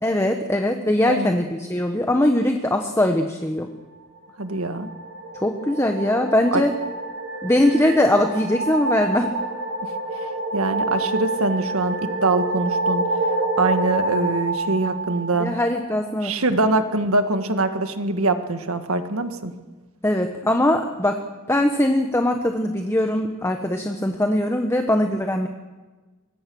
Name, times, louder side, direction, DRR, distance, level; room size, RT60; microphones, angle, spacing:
voice 1, 0.0-3.7 5.3-6.7 7.4-9.3 15.4-16.3 20.0-21.2 21.5-25.5, left 1 dB, 10° left, 5 dB, 1.2 m, -21 dB
voice 2, 4.4-4.9 6.5-6.6 10.5-13.0 13.6-15.5 16.2-19.5, right 2 dB, 75° right, 8 dB, 1.8 m, -23 dB
sound 1, 4.5-15.9, right 2 dB, 55° right, 5.1 m, -27 dB
25.0 x 21.5 x 6.3 m, 1.3 s
head